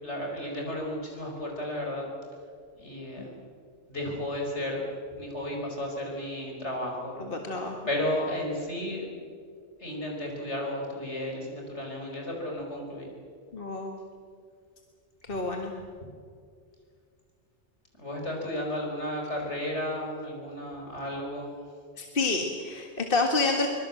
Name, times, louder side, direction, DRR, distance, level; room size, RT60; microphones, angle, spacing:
voice 1, 0.0-2.1 2.8-3.3 3.9-4.9 5.2-7.3 7.9-9.1 9.8-13.1 18.0-21.5, left 1 dB, 75° left, 0 dB, 5.7 m, -33 dB
voice 2, 7.2-7.8 13.5-14.0 15.3-15.7 22.0-23.7, left 3 dB, 50° left, 3 dB, 2.0 m, -28 dB
24.0 x 22.5 x 7.7 m, 2.2 s
omnidirectional pair, 1.2 m